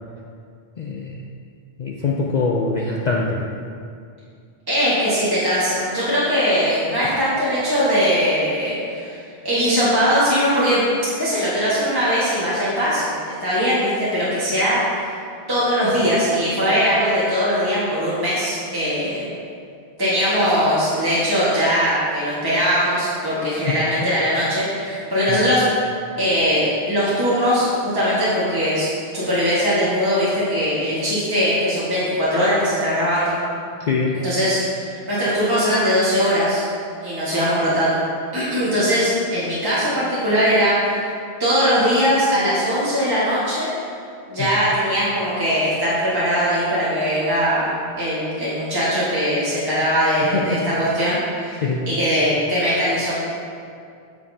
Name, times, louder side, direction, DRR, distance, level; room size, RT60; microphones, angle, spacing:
voice 1, 0.8-1.2 1.8-3.4 23.7-23.8 25.3-25.4 33.8-34.2 44.4-44.5 50.2-50.6 51.5-51.8, left 4 dB, 50° left, -1 dB, 0.6 m, -23 dB
voice 2, 4.7-9.2 9.4-10.8 11.2-13.1 13.4-14.8 15.5-19.3 20.0-25.6 26.2-28.9 29.1-33.4 34.2-36.6 37.0-38.0 38.3-41.0 41.4-43.7 44.3-47.7 48.0-53.1, equal, 20° right, -10 dB, 1.5 m, -20 dB
8.6 x 6.9 x 2.7 m, 2.3 s
omnidirectional pair, 1.1 m